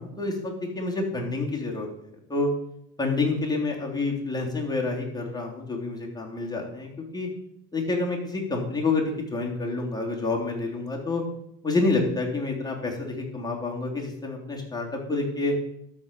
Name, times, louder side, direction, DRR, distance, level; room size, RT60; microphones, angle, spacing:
voice 1, 0.0-2.5 3.0-7.3 7.7-11.2 11.6-15.6, left 3 dB, 10° left, -2 dB, 3.1 m, -28 dB
12.5 x 4.5 x 6.7 m, 0.77 s
supercardioid pair, 95°, 34 cm